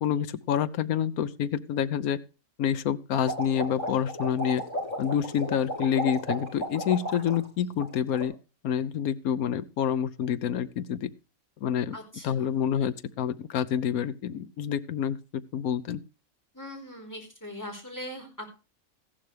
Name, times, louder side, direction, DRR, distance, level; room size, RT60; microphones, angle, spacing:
voice 1, 0.0-2.2 2.6-4.6 5.0-8.3 8.6-11.1 11.6-12.0 12.2-15.2 15.5-16.0, left 9 dB, 85° left, 12 dB, 1.2 m, -28 dB
sound 1, 3.1-7.5 7.7-8.2, equal, 35° left, 6.9 m, -34 dB
voice 2, 11.9-12.5 16.5-18.5, equal, 10° left, 1 dB, 4.3 m, -40 dB
15.0 x 11.5 x 3.3 m, 0.32 s
omnidirectional pair, 1.5 m